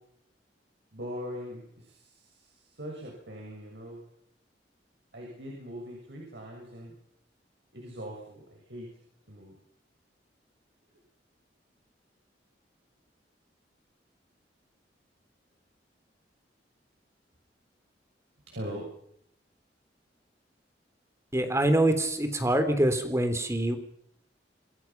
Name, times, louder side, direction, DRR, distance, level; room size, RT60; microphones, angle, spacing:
voice 1, 0.9-4.0 5.1-6.9 7.7-8.9 9.3-9.5 18.5-18.9, equal, 75° right, -1 dB, 7.0 m, -41 dB
voice 2, 21.3-23.8, right 1 dB, 15° right, 8 dB, 3.3 m, -25 dB
28.0 x 21.0 x 6.0 m, 0.70 s
head